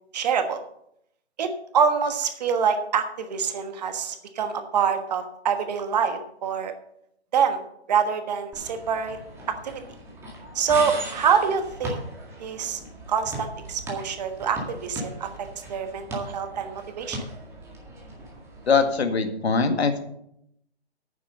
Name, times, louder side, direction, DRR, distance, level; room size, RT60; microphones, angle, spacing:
voice 1, 0.1-0.6 1.4-6.7 7.3-7.6 7.9-9.2 9.5-9.8 10.5-12.0 12.4-12.8 13.1-17.2, right 6 dB, 40° right, 8 dB, 1.3 m, -25 dB
sound 1, 8.5-19.0, right 1 dB, 10° right, 1.9 m, -38 dB
voice 2, 18.7-20.0, left 5 dB, 70° left, 7 dB, 1.9 m, -22 dB
9.5 x 7.2 x 6.9 m, 0.74 s
hypercardioid pair, 150°, 33 cm